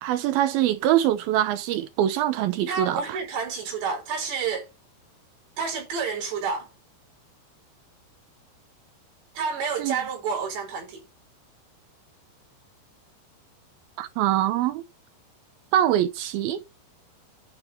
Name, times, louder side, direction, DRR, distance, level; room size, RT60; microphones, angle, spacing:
voice 1, 0.0-3.2 9.8-10.0 14.0-14.8 15.7-16.6, right 12 dB, 85° right, 2.1 m, -23 dB
voice 2, 2.7-4.7 5.6-6.7 9.3-11.0, right 5 dB, 65° right, 6.8 m, -29 dB
11.0 x 4.5 x 7.7 m
omnidirectional pair, 5.3 m